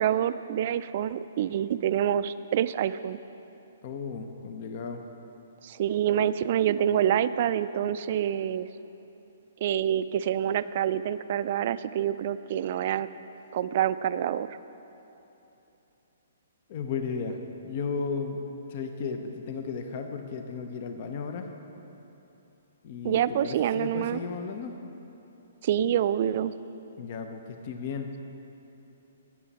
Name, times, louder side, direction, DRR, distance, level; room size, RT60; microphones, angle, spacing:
voice 1, 0.0-3.2 5.6-8.7 9.6-13.1 13.5-14.6 23.0-24.2 25.6-26.5, right 10 dB, 50° right, 14 dB, 0.3 m, -27 dB
voice 2, 3.8-5.0 16.7-18.4 18.7-21.5 22.8-24.8 27.0-28.1, left 5 dB, 50° left, 5 dB, 0.8 m, -34 dB
12.0 x 8.7 x 4.2 m, 3.0 s
hypercardioid pair, 135°, 0 cm